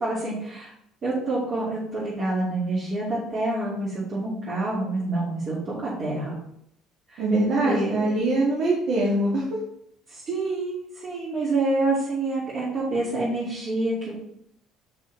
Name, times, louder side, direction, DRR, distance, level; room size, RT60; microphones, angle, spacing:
voice 1, 0.0-0.7 1.0-6.4 7.1-7.2 7.6-8.1 10.1-14.1, right 2 dB, 35° right, -9 dB, 2.6 m, -27 dB
voice 2, 7.2-9.6, right 2 dB, 55° right, -5 dB, 2.3 m, -23 dB
7.1 x 6.2 x 4.1 m, 0.73 s
cardioid pair, 145°, 0 cm